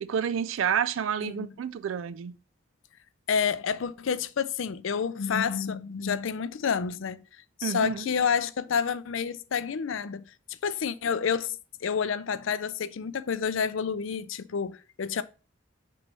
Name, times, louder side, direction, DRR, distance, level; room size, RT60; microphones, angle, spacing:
voice 1, 0.0-2.4 7.6-8.1, right 8 dB, 70° right, 0.4 m, -29 dB
voice 2, 3.3-7.2 7.6-15.2, left 6 dB, 65° left, 0.5 m, -29 dB
6.1 x 3.2 x 5.4 m
head